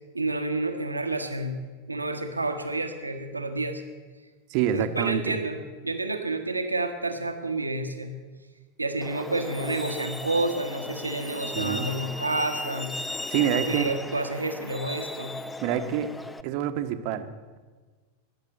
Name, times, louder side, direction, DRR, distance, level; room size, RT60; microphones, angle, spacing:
voice 1, 0.1-1.6 1.9-3.8 4.7-8.1 8.8-12.9 13.4-15.4, right 2 dB, 80° right, 6 dB, 1.3 m, -29 dB
voice 2, 4.5-5.4 11.6-11.9 13.3-13.8 15.6-16.1 16.4-17.6, right 10 dB, 45° right, 9 dB, 1.2 m, -27 dB
Truck, 9.0-16.4, left 1 dB, 10° left, 0.6 m, -36 dB
21.0 x 7.5 x 8.7 m, 1.4 s
figure-of-eight pair, 90°, 0 cm